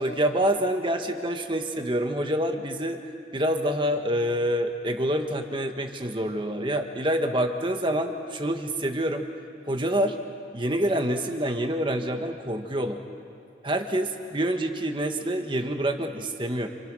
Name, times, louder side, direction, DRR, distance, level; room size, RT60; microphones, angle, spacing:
voice 1, 0.0-3.0 3.3-9.3 9.7-10.2 10.5-13.0 13.6-16.7, right 1 dB, 25° right, 5 dB, 1.6 m, -27 dB
29.5 x 28.0 x 6.4 m, 2.5 s
head